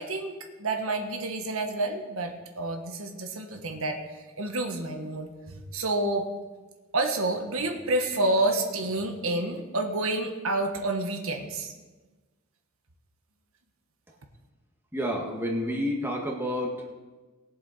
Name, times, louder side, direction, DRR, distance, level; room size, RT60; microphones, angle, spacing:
voice 1, 0.0-4.0 4.4-6.3 6.9-11.7, right 2 dB, 90° right, 4 dB, 1.5 m, -29 dB
voice 2, 14.9-16.9, equal, 10° right, -1 dB, 1.8 m, -29 dB
20.5 x 7.3 x 4.3 m, 1.3 s
head